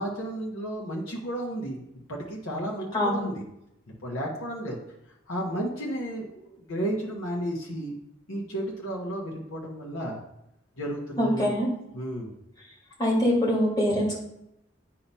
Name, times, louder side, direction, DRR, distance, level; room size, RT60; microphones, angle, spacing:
voice 1, 0.0-1.8 2.1-3.4 4.0-4.8 5.3-7.9 8.3-10.2 10.8-11.6 11.9-12.3, right 1 dB, 85° left, -2 dB, 1.1 m, -33 dB
voice 2, 2.9-3.3 11.2-11.7 13.0-14.2, equal, 20° left, -5 dB, 1.9 m, -24 dB
8.6 x 2.9 x 5.4 m, 0.83 s
head